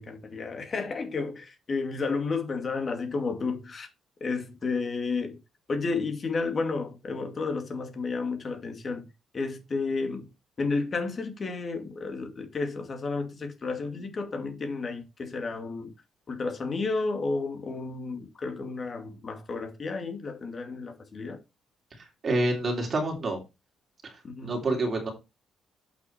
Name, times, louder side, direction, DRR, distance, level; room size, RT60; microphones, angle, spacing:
voice 1, 0.0-3.9 4.2-5.4 5.7-9.1 9.3-10.3 10.6-15.9 16.3-21.4 24.2-24.6, left 4 dB, 40° left, 2.3 m, -32 dB
voice 2, 22.2-23.4 24.0-24.1 24.4-25.1, right 2 dB, 40° right, 3.3 m, -27 dB
8.0 x 5.9 x 4.4 m
cardioid pair, 85°, 0 cm